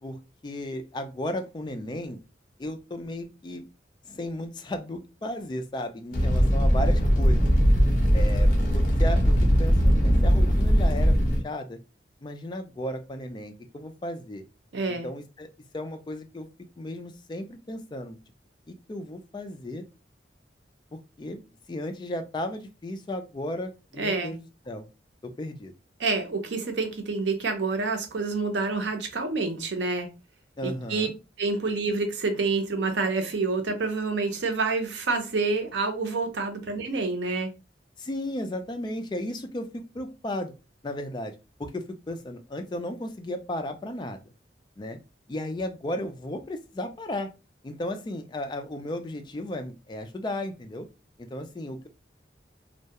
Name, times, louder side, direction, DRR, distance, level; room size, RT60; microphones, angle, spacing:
voice 1, 0.0-2.2 2.6-3.7 4.1-7.5 8.1-11.2 11.4-11.8 12.2-14.4 15.0-15.5 15.7-16.5 16.8-18.2 18.7-19.8 21.2-21.4 21.7-24.9 25.2-25.7 30.6-31.1 38.0-40.5 40.8-41.3 41.6-44.2 44.8-45.0 45.3-47.3 47.6-50.9 51.2-51.9, left 1 dB, 25° left, 0.3 m, -34 dB
Fire, 6.1-11.4, equal, 45° left, 0.7 m, -20 dB
voice 2, 14.7-15.1 24.0-24.3 26.0-30.1 30.6-31.1 31.4-37.5, right 3 dB, 75° right, 0.6 m, -28 dB
2.2 x 2.1 x 2.8 m
head